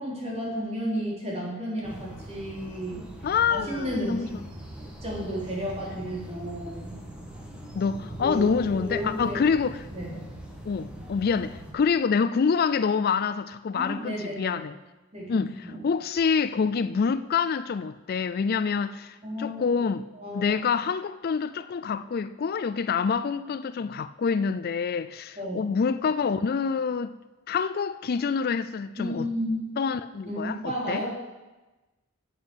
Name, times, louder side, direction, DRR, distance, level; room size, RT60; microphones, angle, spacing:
voice 1, 0.0-3.1 3.5-4.3 4.7-7.0 8.2-9.4 9.9-10.2 13.7-14.6 15.1-15.8 19.2-20.7 25.4-25.7 29.0-29.8 30.2-31.1, equal, 30° right, 3.8 m, -33 dB
sound 1, 1.8-11.7, right 1 dB, 5° right, 1.9 m, -42 dB
voice 2, 3.2-4.3 7.8-9.8 10.7-14.7 15.3-20.1 20.3-27.1 27.5-29.3 29.8-31.0, left 5 dB, 45° left, 0.4 m, -26 dB
9.9 x 8.5 x 7.9 m
head